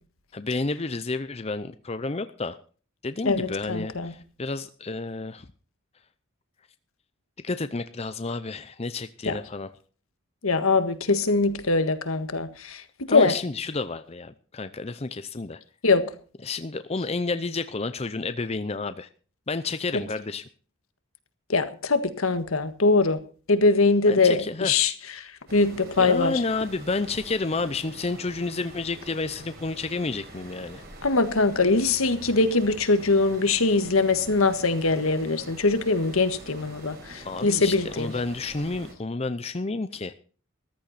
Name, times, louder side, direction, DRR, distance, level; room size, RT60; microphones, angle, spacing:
voice 1, 0.3-2.6 3.0-5.5 7.4-9.7 13.1-15.6 16.4-19.1 19.5-20.4 24.1-24.7 26.0-30.8 37.2-40.1, left 3 dB, 30° left, 11 dB, 0.6 m, -30 dB
voice 2, 3.2-4.1 9.3-9.4 10.4-13.3 15.8-16.1 19.9-20.0 21.5-23.2 23.5-24.9 25.2-26.4 31.0-38.1, left 3 dB, 90° left, 10 dB, 1.6 m, -22 dB
sound 1, 25.5-38.9, right 1 dB, 50° right, 4.4 m, -45 dB
14.5 x 13.0 x 4.2 m, 0.39 s
head